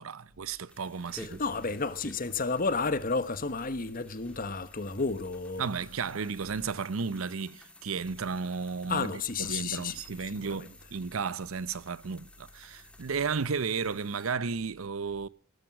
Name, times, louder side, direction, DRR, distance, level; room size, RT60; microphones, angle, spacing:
voice 1, 0.0-1.4 5.6-9.1 9.4-15.3, right 5 dB, 85° right, 0.7 m, -33 dB
sound 1, 0.7-14.3, left 1 dB, 5° left, 1.7 m, -53 dB
voice 2, 1.2-5.7 8.9-10.7, left 4 dB, 45° left, 1.2 m, -32 dB
19.0 x 12.0 x 6.1 m
head